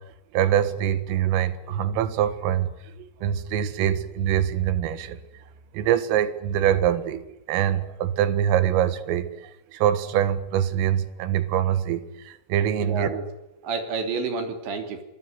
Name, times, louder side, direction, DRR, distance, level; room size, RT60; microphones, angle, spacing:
voice 1, 0.3-2.7 3.0-5.2 5.7-7.2 7.5-13.1, right 10 dB, 85° right, 12 dB, 4.2 m, -24 dB
voice 2, 12.8-13.3 13.6-15.0, right 4 dB, 65° right, 6 dB, 5.0 m, -29 dB
25.0 x 22.0 x 9.6 m, 0.87 s
omnidirectional pair, 5.7 m